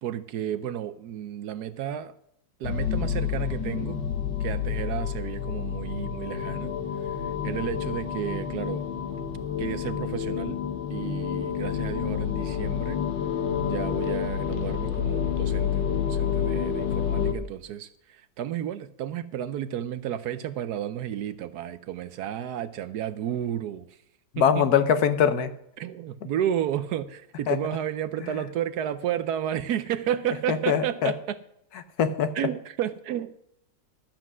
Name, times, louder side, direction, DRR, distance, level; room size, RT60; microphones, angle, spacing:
voice 1, 0.0-2.1 2.6-4.0 4.4-6.7 7.0-7.2 7.4-8.8 9.6-10.6 10.9-13.0 13.6-24.0 24.4-24.6 25.8-31.4 32.3-33.3, right 10 dB, 70° right, 13 dB, 1.0 m, -32 dB
sound 1, 2.6-17.3, left 8 dB, 80° left, 1.8 m, -29 dB
voice 2, 24.3-25.5 27.5-27.6 30.5-31.1 32.0-32.3, left 8 dB, 65° left, 11 dB, 1.2 m, -22 dB
12.0 x 7.8 x 6.1 m, 0.76 s
omnidirectional pair, 1.9 m